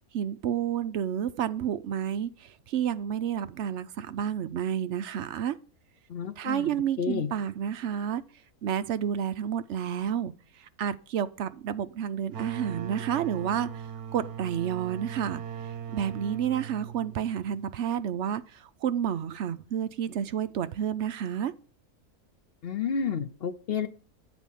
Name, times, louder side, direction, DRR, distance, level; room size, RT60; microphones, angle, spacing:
voice 1, 0.1-5.6 6.4-8.2 8.6-10.3 10.6-13.7 14.1-15.4 15.9-21.5, right 9 dB, 65° right, 0.8 m, -30 dB
voice 2, 6.1-6.7 7.0-7.3 22.6-23.9, left 6 dB, 50° left, 0.8 m, -30 dB
sound 1, 12.3-17.8, right 8 dB, 80° right, 1.4 m, -39 dB
8.3 x 4.3 x 7.0 m
omnidirectional pair, 1.6 m